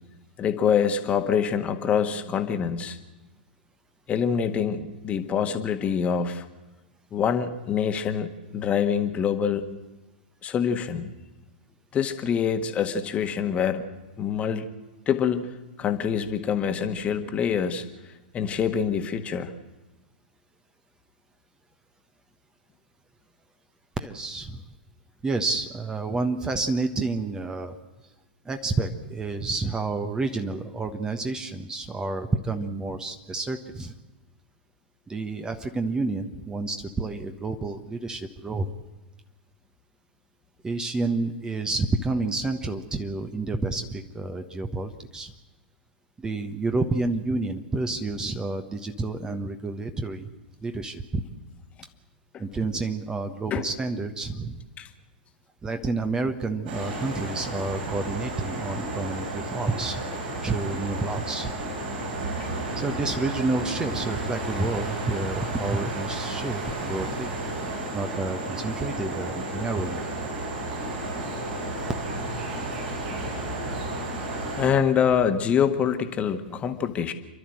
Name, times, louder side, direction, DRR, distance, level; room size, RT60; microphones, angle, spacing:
voice 1, 0.4-3.0 4.1-6.4 7.1-9.7 10.4-11.1 11.9-13.8 14.2-14.7 15.1-15.5 15.8-17.9 18.3-19.5 52.3-52.4 53.5-53.6 54.8-54.9 62.4-62.5 71.6-71.7 74.6-77.1, left 7 dB, 25° left, 8 dB, 1.6 m, -25 dB
voice 2, 24.0-24.6 25.2-27.8 28.4-33.9 35.1-38.7 40.6-45.3 46.2-50.3 50.6-51.2 52.4-54.6 55.6-60.0 60.4-61.5 62.8-67.3 67.9-70.0, right 3 dB, 15° right, 7 dB, 1.3 m, -29 dB
sound 1, 56.7-74.7, right 2 dB, 65° right, 7.8 m, -32 dB
28.5 x 12.0 x 7.9 m, 1.1 s
figure-of-eight pair, 100°, 5 cm